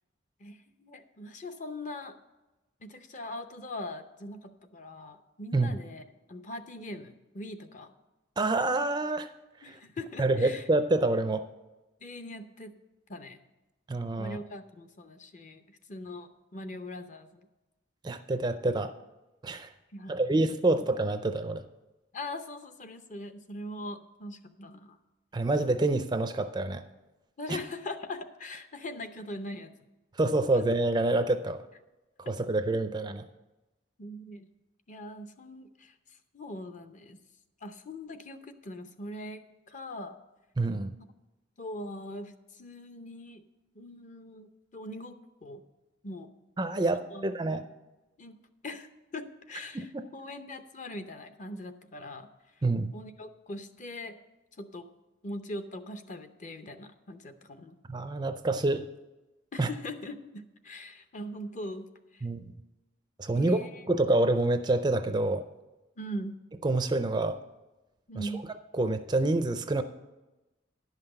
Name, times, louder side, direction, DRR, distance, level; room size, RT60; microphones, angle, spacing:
voice 1, 0.4-2.2 2.8-7.9 9.6-10.7 12.0-12.7 13.1-13.4 14.2-17.5 19.9-20.3 20.7-20.8 22.1-25.0 27.4-29.7 30.5-30.6 34.0-34.5 34.9-37.2 37.6-40.2 41.6-43.4 43.7-45.6 46.0-46.3 47.1-47.6 48.2-48.4 48.6-52.3 52.9-54.2 54.6-54.9 55.2-57.8 59.5-62.3 63.3-63.8 66.0-66.4 68.1-68.5, left 1 dB, 40° left, 8 dB, 0.7 m, -41 dB
voice 2, 8.4-9.3 10.2-11.5 13.9-14.4 18.0-18.9 19.4-19.7 20.1-21.6 25.3-26.8 27.5-27.6 30.2-31.6 32.3-33.2 40.6-40.9 46.6-47.6 49.7-50.0 52.6-52.9 57.9-58.9 59.6-59.7 62.2-62.5 63.2-63.6 63.9-65.5 66.6-67.4 68.2-68.3 68.8-69.8, right 2 dB, 20° right, 9 dB, 0.4 m, -27 dB
11.0 x 5.8 x 7.8 m, 1.0 s
head